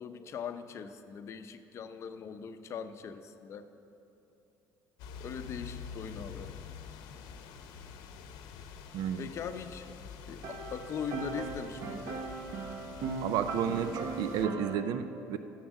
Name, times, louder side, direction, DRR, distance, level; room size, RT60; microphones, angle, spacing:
voice 1, 0.0-3.7 5.2-6.5 9.2-9.9 10.3-12.3, left 7 dB, 45° left, 9 dB, 0.6 m, -41 dB
sound 1, 5.0-14.5, left 7 dB, 90° left, 0.7 m, -47 dB
voice 2, 8.9-9.3 13.2-15.4, right 8 dB, 75° right, 10 dB, 0.5 m, -32 dB
sound 2, 10.3-14.8, right 4 dB, 55° right, 1.0 m, -39 dB
11.0 x 7.3 x 6.3 m, 2.8 s
cardioid pair, 130°, 7 cm